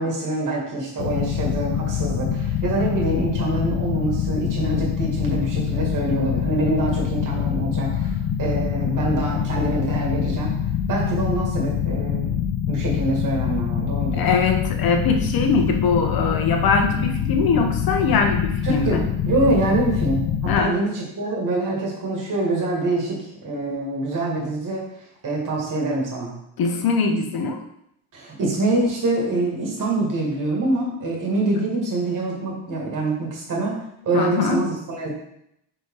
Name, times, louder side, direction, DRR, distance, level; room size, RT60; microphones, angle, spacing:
voice 1, 0.0-10.6 10.9-12.4 12.7-14.3 18.6-24.8 25.2-26.4 28.1-33.7 34.0-35.1, right 2 dB, 40° right, -3 dB, 2.4 m, -25 dB
sound 1, 1.0-20.6, left 8 dB, 65° left, 0.9 m, -25 dB
voice 2, 14.2-19.0 20.5-20.7 26.6-27.6 34.1-34.6, left 4 dB, 50° left, 4 dB, 1.2 m, -22 dB
4.6 x 4.5 x 4.9 m, 0.77 s
cardioid pair, 100°, 47 cm